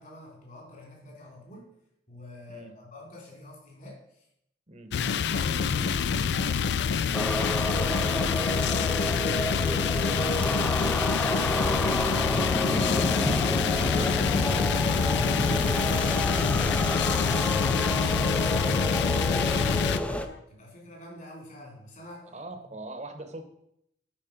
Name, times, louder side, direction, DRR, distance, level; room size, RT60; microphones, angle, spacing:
voice 1, 0.0-1.7 2.1-4.0 5.1-9.0 9.3-22.3, equal, 45° left, -1 dB, 3.3 m, -46 dB
sound 1, 4.9-20.0, left 6 dB, 70° left, 0.3 m, -26 dB
sound 2, 5.4-20.4, left 4 dB, 85° left, 0.8 m, -45 dB
sound 3, 7.1-20.3, left 1 dB, 5° left, 0.5 m, -29 dB
voice 2, 22.3-23.4, right 2 dB, 40° right, 7 dB, 1.0 m, -41 dB
8.8 x 5.4 x 5.2 m, 0.75 s
head